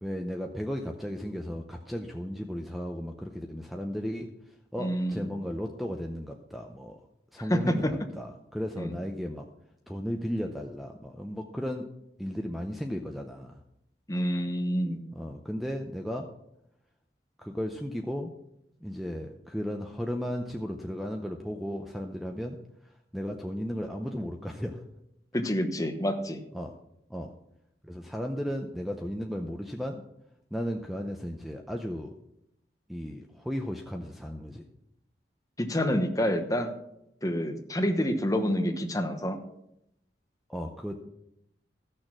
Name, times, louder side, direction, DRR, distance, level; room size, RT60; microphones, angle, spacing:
voice 1, 0.0-4.3 4.7-7.0 7.3-9.5 9.9-11.9 12.2-13.6 15.1-16.3 17.4-18.3 18.8-22.6 22.8-24.8 26.5-26.8 27.1-27.3 27.8-30.0 30.5-32.1 32.9-34.6 40.5-41.1, equal, ahead, 3 dB, 0.7 m, -35 dB
voice 2, 4.8-5.3 7.5-7.9 8.8-8.9 14.1-15.0 25.3-26.4 35.6-36.7 37.2-39.4, equal, 20° left, 5 dB, 1.1 m, -28 dB
14.5 x 6.6 x 6.0 m, 0.81 s
head